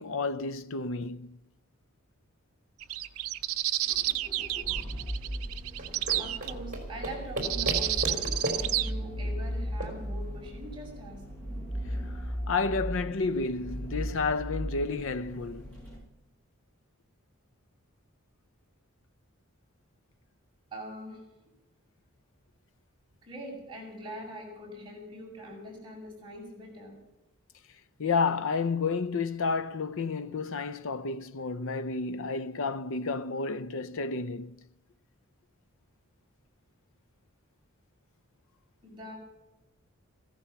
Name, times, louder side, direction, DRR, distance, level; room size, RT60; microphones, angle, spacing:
voice 1, 0.0-1.4 12.5-15.7 28.0-34.6, left 4 dB, 65° left, 0.6 m, -31 dB
sound 1, 2.8-6.5 7.4-8.9, right 14 dB, 85° right, 0.6 m, -30 dB
sound 2, 3.9-16.0, equal, 5° left, 6.4 m, -37 dB
sound 3, 5.7-10.9, right 1 dB, 40° right, 3.9 m, -37 dB
voice 2, 6.2-11.2 20.7-21.2 23.2-27.0 38.8-39.2, equal, 20° right, 6.8 m, -43 dB
15.5 x 14.0 x 5.8 m
head